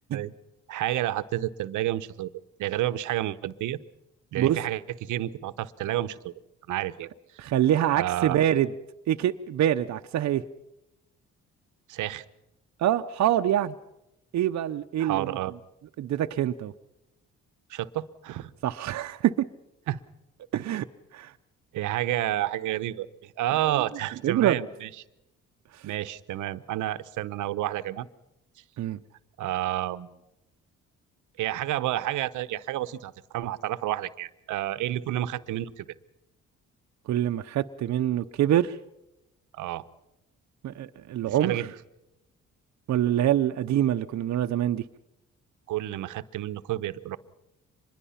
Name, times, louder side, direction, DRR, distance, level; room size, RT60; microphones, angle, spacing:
voice 1, 0.7-2.3 2.6-3.8 4.3-6.3 6.7-7.1 8.0-8.4 11.9-12.2 15.0-15.5 17.7-18.5 19.9-20.0 21.7-24.9 25.8-28.1 29.4-30.1 31.4-35.8 39.5-39.9 41.3-41.7 45.7-47.2, right 14 dB, 85° right, 14 dB, 0.9 m, -30 dB
voice 2, 7.4-8.7 9.1-10.4 12.8-13.7 14.3-15.4 16.0-16.7 18.6-19.5 20.5-20.9 21.1-21.3 23.7-23.8 24.2-24.6 28.8-29.0 37.1-38.8 40.6-41.6 42.9-44.8, right 11 dB, 65° right, 6 dB, 0.7 m, -25 dB
25.5 x 21.5 x 5.7 m, 0.90 s
cardioid pair, 90°, 30 cm